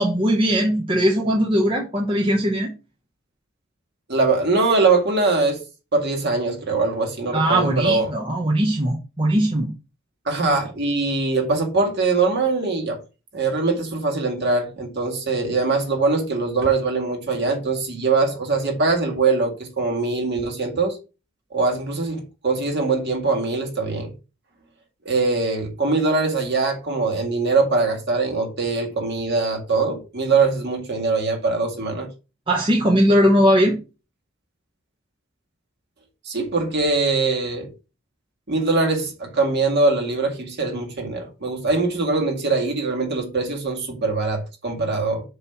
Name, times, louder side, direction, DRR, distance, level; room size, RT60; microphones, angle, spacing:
voice 1, 0.0-2.7 7.3-9.7 32.5-33.8, equal, 25° right, 1.0 m, -19 dB
voice 2, 4.1-5.6 5.9-8.1 10.3-13.0 13.3-21.0 21.5-24.1 25.1-32.1 36.3-37.7 38.5-45.2, right 3 dB, 50° right, 1.9 m, -22 dB
7.0 x 3.2 x 5.7 m
head